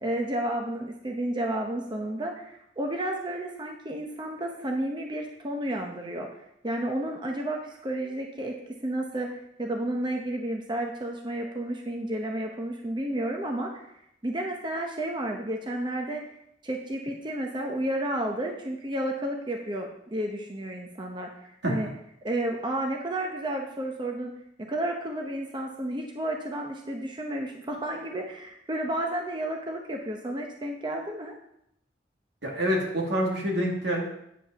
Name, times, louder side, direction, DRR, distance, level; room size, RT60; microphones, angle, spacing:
voice 1, 0.0-6.3 6.6-8.6 8.8-13.9 14.2-16.2 16.6-21.9 22.2-24.3 24.6-31.3, right 1 dB, 25° right, 2 dB, 0.8 m, -31 dB
voice 2, 32.4-34.1, equal, 80° right, -1 dB, 2.4 m, -26 dB
9.2 x 5.3 x 5.7 m, 0.77 s
head